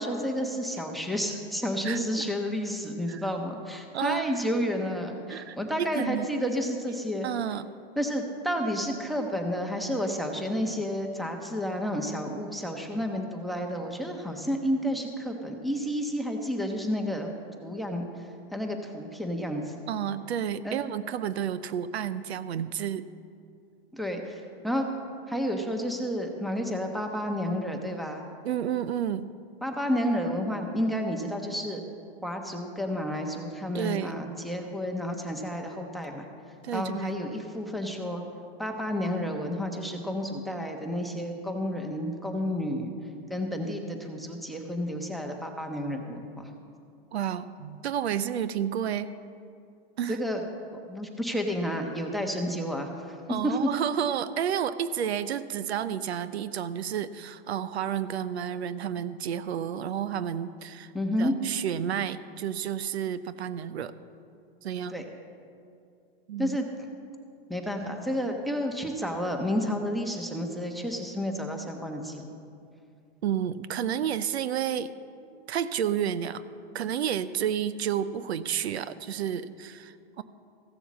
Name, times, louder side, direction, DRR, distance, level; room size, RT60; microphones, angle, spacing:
voice 1, 0.0-7.3 8.0-17.3 17.6-18.0 18.5-19.8 20.6-20.8 23.9-24.9 25.3-28.2 29.6-31.8 32.2-36.2 36.7-38.2 38.6-42.9 43.3-46.5 50.1-50.4 50.9-53.1 53.4-53.6 60.9-61.3 64.9-65.0 66.4-66.7 67.5-72.3, equal, ahead, 3 dB, 1.1 m, -31 dB
voice 2, 1.8-2.3 3.1-3.2 3.9-4.3 5.3-6.5 7.2-7.7 19.9-23.1 28.4-29.3 33.7-34.2 36.6-37.2 47.1-49.1 50.0-50.2 53.3-60.9 61.2-63.9 64.6-65.0 66.3-66.6 73.2-74.9 75.5-76.4 76.7-80.2, right 9 dB, 85° right, 15 dB, 0.6 m, -31 dB
15.0 x 7.0 x 7.3 m, 2.4 s
hypercardioid pair, 120°, 31 cm